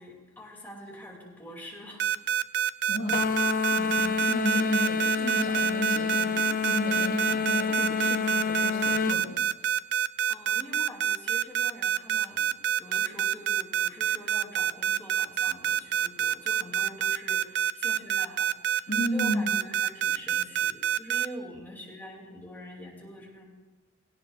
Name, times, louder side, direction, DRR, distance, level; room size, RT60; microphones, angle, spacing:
voice 1, 0.0-2.1 10.3-18.5 18.8-23.4, left 1 dB, 10° left, -3 dB, 2.7 m, -45 dB
sound 1, 2.0-21.3, right 10 dB, 55° right, 0.4 m, -26 dB
voice 2, 2.9-3.3 3.8-9.7 18.9-19.5, equal, 80° left, -1 dB, 2.1 m, -33 dB
sound 2, 3.1-9.2, left 5 dB, 45° left, 0.6 m, -28 dB
sound 3, 3.1-8.3, equal, 15° right, 2.7 m, -48 dB
17.5 x 16.5 x 2.5 m, 1.2 s
head